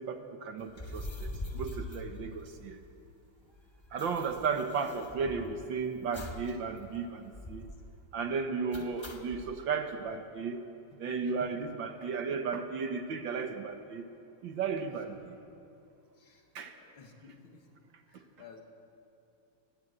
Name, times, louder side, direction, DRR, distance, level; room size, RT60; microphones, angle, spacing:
voice 1, 0.0-2.8 3.9-7.7 8.1-10.6 11.0-14.1 14.4-15.4 16.6-16.7, right 5 dB, 65° right, 7 dB, 1.8 m, -34 dB
sound 1, 0.7-3.0 3.2-3.3 3.5-5.6 6.1-6.6 6.8-6.9 7.3-7.8 8.7-9.4, left 1 dB, 15° left, 1.0 m, -42 dB
voice 2, 16.1-17.7 18.1-18.6, left 5 dB, 70° left, 3 dB, 2.7 m, -54 dB
19.5 x 16.5 x 8.1 m, 2.6 s
omnidirectional pair, 2.4 m